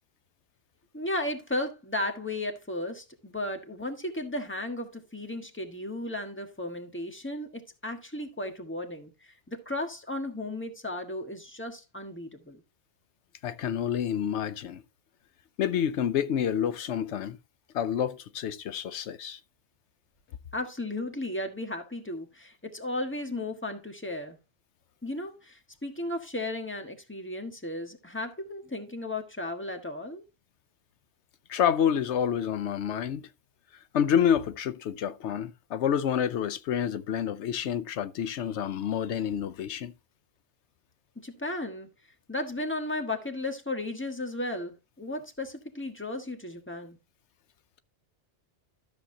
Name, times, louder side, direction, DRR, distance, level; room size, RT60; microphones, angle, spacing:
voice 1, 0.9-12.6 20.5-24.4 25.0-30.2 41.1-41.9 42.3-47.0, left 1 dB, 10° left, 1.4 m, -35 dB
voice 2, 13.4-14.8 15.6-17.4 17.7-19.4 31.5-33.2 33.9-39.9, left 9 dB, 85° left, 0.9 m, -28 dB
13.0 x 7.2 x 2.7 m
omnidirectional pair, 1.1 m